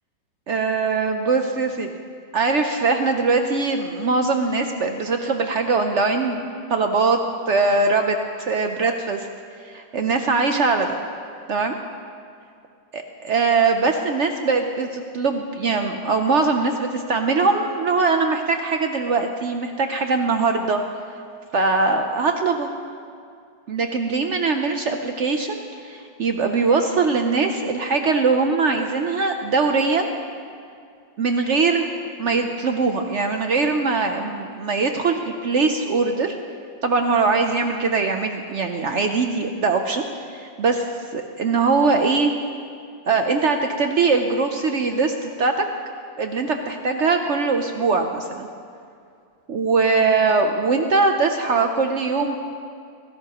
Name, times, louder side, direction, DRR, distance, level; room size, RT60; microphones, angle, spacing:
voice 1, 0.5-1.9 2.3-7.2 7.5-8.2 8.5-9.3 9.6-11.0 11.5-11.8 12.9-20.8 21.5-22.7 23.7-30.1 31.2-31.9 32.2-36.4 36.8-40.1 40.3-40.9 41.1-42.3 43.1-45.6 46.2-48.5 49.5-52.3, right 4 dB, 65° right, 5 dB, 0.7 m, -21 dB
23.5 x 16.0 x 3.0 m, 2.3 s
omnidirectional pair, 2.0 m